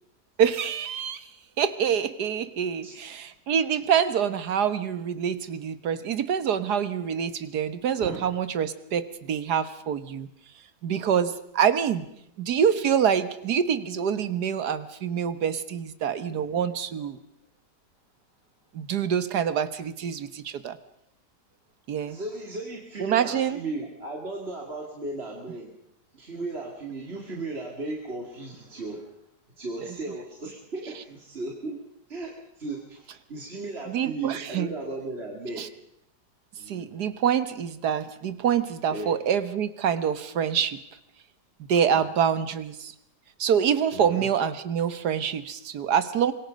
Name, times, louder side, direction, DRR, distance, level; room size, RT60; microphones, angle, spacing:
voice 1, 0.4-1.3 1.6-10.3 10.8-12.1 12.4-17.2 18.7-20.8 21.9-22.2 23.0-23.6 33.9-34.7 35.6-35.7 36.7-40.8 41.7-42.9 43.4-46.3, right 8 dB, 65° right, 12 dB, 1.7 m, -26 dB
voice 2, 2.8-3.3 8.0-8.3 16.3-16.7 22.1-25.7 26.1-29.1 29.6-31.8 32.1-35.7 36.6-36.9 38.9-39.2 41.8-42.1 43.9-44.3, right 2 dB, 35° right, -1 dB, 2.7 m, -36 dB
25.0 x 22.0 x 5.3 m, 0.77 s
omnidirectional pair, 1.9 m